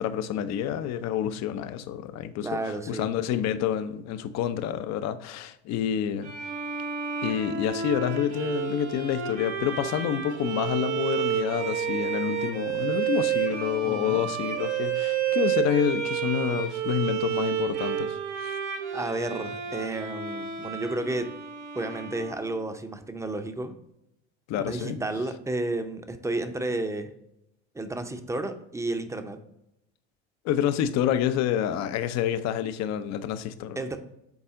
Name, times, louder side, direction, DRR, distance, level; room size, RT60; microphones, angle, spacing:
voice 1, 0.0-6.3 7.2-18.6 24.5-25.0 30.4-33.8, left 9 dB, 55° left, 0.7 m, -28 dB
voice 2, 2.4-3.1 13.8-14.2 18.9-21.4 21.7-23.8 24.6-27.1 27.7-29.4 33.8-34.0, right 2 dB, 10° right, 0.7 m, -32 dB
Bowed string instrument, 6.2-22.8, right 8 dB, 90° right, 1.3 m, -30 dB
7.2 x 4.1 x 3.7 m
hypercardioid pair, 85°, 33 cm